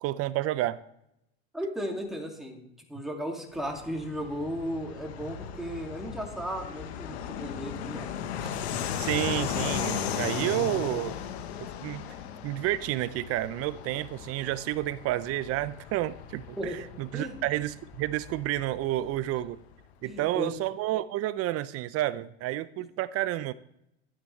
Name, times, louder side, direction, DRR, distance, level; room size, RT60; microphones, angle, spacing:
voice 1, 0.0-0.8 9.0-11.2 11.8-12.0 12.4-16.7 17.0-19.6 20.0-23.5, right 15 dB, 50° right, 17 dB, 0.6 m, -30 dB
voice 2, 1.5-2.6 2.9-8.1 16.6-16.8 17.1-17.3 20.0-20.5, equal, ahead, 1 dB, 2.3 m, -35 dB
Fixed-wing aircraft airplane, 3.5-19.7, left 8 dB, 80° left, 1.2 m, -37 dB
12.0 x 9.5 x 3.2 m, 0.80 s
hypercardioid pair, 90°, 32 cm